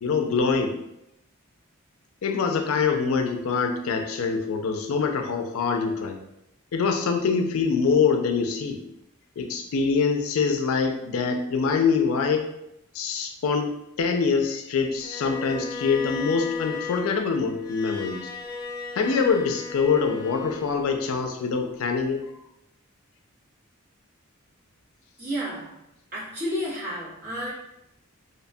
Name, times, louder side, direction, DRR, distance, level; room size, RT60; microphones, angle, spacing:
voice 1, 0.0-0.7 2.2-6.2 6.7-8.8 9.4-12.5 12.9-18.2 19.0-22.2, left 5 dB, 75° left, 4 dB, 0.4 m, -24 dB
Bowed string instrument, 15.0-21.2, left 4 dB, 20° left, 0.5 m, -36 dB
voice 2, 25.2-25.8 26.1-27.5, equal, 45° right, -7 dB, 1.0 m, -31 dB
2.8 x 2.1 x 2.6 m, 0.82 s
head